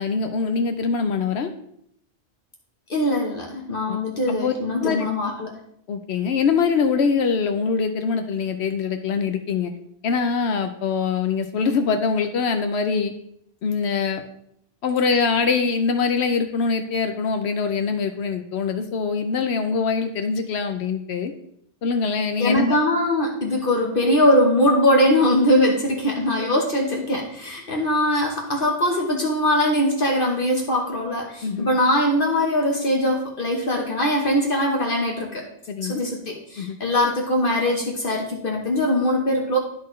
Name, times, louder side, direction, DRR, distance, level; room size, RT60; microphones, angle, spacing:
voice 1, 0.0-1.5 3.9-4.0 4.3-4.5 4.8-5.1 5.9-9.7 10.0-13.1 13.6-14.2 14.8-21.3 21.8-22.8 26.4-26.5 31.4-31.7 35.7-36.0 36.6-36.8, left 5 dB, 70° left, 7 dB, 0.9 m, -23 dB
voice 2, 2.9-5.6 22.4-35.4 35.8-39.6, left 1 dB, 55° left, 0 dB, 1.1 m, -21 dB
12.0 x 4.3 x 3.1 m, 0.73 s
omnidirectional pair, 1.2 m